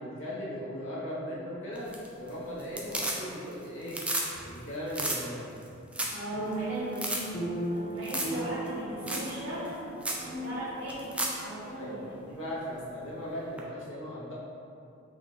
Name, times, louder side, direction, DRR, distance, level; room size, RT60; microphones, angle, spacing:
voice 1, 0.0-1.9 2.1-4.0 4.4-5.5 11.7-14.3, equal, 70° left, -7 dB, 1.1 m, -38 dB
sound 1, 1.8-2.3 2.6-3.5 3.8-4.3 4.6-4.7 4.9-5.2 5.6-5.7 5.9-6.2 6.5-6.6 6.9-7.2 8.0-8.4 8.7-8.8 9.1-9.3 9.7-9.8 10.0-10.2 10.9-11.4 13.6-13.7, right 1 dB, 5° right, 0.3 m, -32 dB
sound 2, 4.3-4.8 6.3-13.1, right 2 dB, 30° left, 0.7 m, -38 dB
voice 2, 6.1-7.2 7.7-9.8 10.4-11.0 11.4-12.0, equal, 75° right, -8 dB, 1.3 m, -37 dB
3.6 x 2.6 x 3.9 m, 2.6 s
head